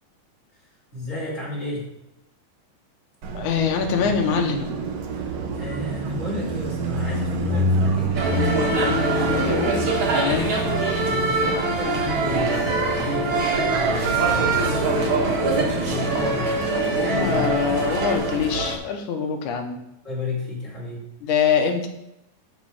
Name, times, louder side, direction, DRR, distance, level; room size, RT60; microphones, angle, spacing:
voice 1, 0.9-1.9 5.2-8.3 10.6-16.7 17.0-17.8 20.0-21.0, left 1 dB, 20° left, -5 dB, 2.9 m, -32 dB
Car passing by, 3.2-18.2, right 2 dB, 70° right, 1.5 m, -29 dB
voice 2, 3.3-4.8 9.3-10.6 16.9-19.9 21.2-21.9, left 6 dB, 70° left, 4 dB, 2.1 m, -24 dB
sound 1, 8.1-18.8, right 2 dB, 45° right, 1.8 m, -23 dB
13.0 x 4.4 x 4.9 m, 0.85 s
omnidirectional pair, 4.1 m